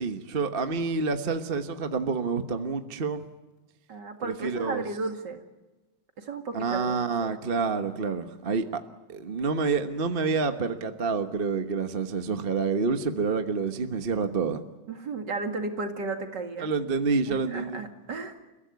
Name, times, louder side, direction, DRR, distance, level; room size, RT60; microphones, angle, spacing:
voice 1, 0.0-3.3 4.2-4.9 6.5-8.8 9.1-14.6 16.6-17.8, right 4 dB, 35° right, 8 dB, 1.2 m, -28 dB
voice 2, 3.9-5.4 6.2-7.3 14.9-16.7 17.3-18.4, right 3 dB, 55° right, 5 dB, 2.7 m, -34 dB
30.0 x 15.5 x 9.4 m, 1.1 s
omnidirectional pair, 2.3 m